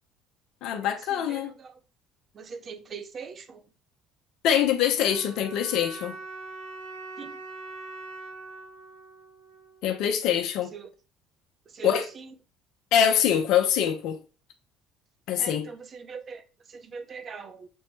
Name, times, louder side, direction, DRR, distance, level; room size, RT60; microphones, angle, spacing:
voice 1, 0.6-1.5 4.4-6.2 9.8-10.7 11.8-12.1 12.9-14.2 15.3-15.7, left 9 dB, 70° left, 0.6 m, -24 dB
voice 2, 2.5-3.4 7.2-7.3 10.7-10.8 11.8-12.0 15.4-15.6 16.1-16.4 16.9-17.7, right 6 dB, 40° right, 0.7 m, -39 dB
sound 1, 5.0-10.1, right 3 dB, 75° right, 1.7 m, -42 dB
6.1 x 2.1 x 3.1 m
supercardioid pair, 85°, 0 cm